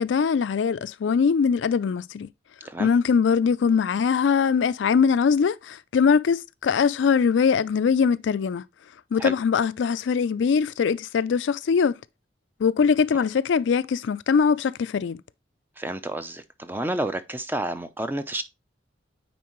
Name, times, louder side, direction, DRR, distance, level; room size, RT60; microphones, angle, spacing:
voice 1, 0.0-2.3 2.8-8.6 9.1-11.9 12.6-15.2, left 6 dB, 75° left, 0.4 m, -22 dB
voice 2, 15.8-18.4, right 1 dB, 10° right, 0.6 m, -30 dB
9.3 x 4.3 x 3.0 m
head